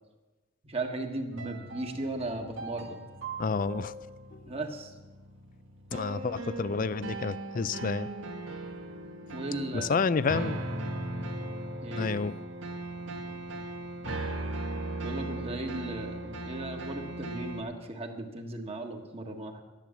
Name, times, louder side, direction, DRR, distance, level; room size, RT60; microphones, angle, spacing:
voice 1, 0.6-3.0 4.5-4.9 9.3-10.0 11.8-12.1 15.0-19.6, right 2 dB, 30° right, 3 dB, 1.6 m, -36 dB
sound 1, 1.3-17.6, right 2 dB, 90° right, 1.5 m, -38 dB
voice 2, 3.4-3.9 5.9-8.1 9.7-10.6 12.0-12.3, left 5 dB, 45° left, 17 dB, 0.4 m, -29 dB
13.5 x 11.0 x 7.4 m, 1.2 s
head